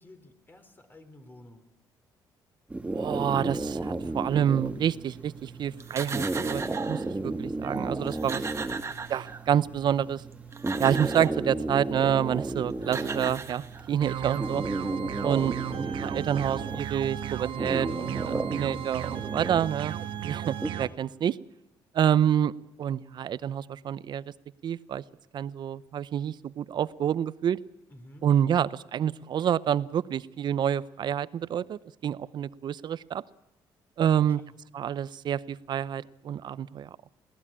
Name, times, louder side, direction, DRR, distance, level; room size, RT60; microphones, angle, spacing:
voice 1, 0.0-1.7 8.6-9.0 19.3-19.6 27.9-28.3 34.0-34.5, left 1 dB, 25° left, 7 dB, 3.5 m, -52 dB
sound 1, 2.7-20.7, right 2 dB, 15° right, 1.4 m, -34 dB
voice 2, 2.9-6.6 6.9-8.4 9.1-10.2 10.8-14.6 15.2-19.9 20.2-21.4 21.9-24.2 24.6-25.0 25.3-27.6 28.2-33.2 34.0-34.4 34.7-36.9, right 9 dB, 60° right, 18 dB, 0.7 m, -28 dB
sound 2, 5.8-7.1 7.8-7.9 8.1-9.6 10.3-11.4 12.5-12.6 12.8-14.1, right 5 dB, 30° right, 1.4 m, -37 dB
sound 3, 14.0-20.9, right 9 dB, 75° right, 1.3 m, -35 dB
21.0 x 16.5 x 8.7 m, 0.94 s
cardioid pair, 95°, 9 cm